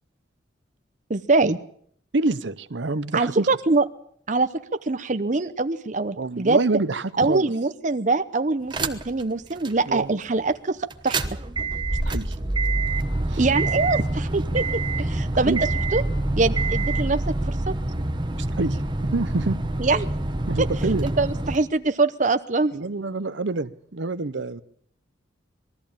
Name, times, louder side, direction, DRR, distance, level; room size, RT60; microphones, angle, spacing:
voice 1, 1.1-1.6 3.1-3.8 4.3-4.5 4.8-6.6 7.2-10.8 11.0-11.2 13.4-15.6 15.9-16.0 16.4-17.2 17.5-17.7 19.8-20.1 20.6-22.8, right 3 dB, 40° right, 10 dB, 0.7 m, -23 dB
voice 2, 2.1-3.5 6.2-7.5 9.9-10.2 11.9-12.4 13.3-13.4 15.5-15.6 18.4-18.8 19.1-19.6 20.5-21.1 22.7-24.6, right 3 dB, 70° right, 13 dB, 0.8 m, -27 dB
sound 1, 8.7-9.2 9.6-9.7 10.9-21.6, right 2 dB, 25° right, 1.1 m, -26 dB
21.0 x 14.0 x 8.8 m, 0.65 s
head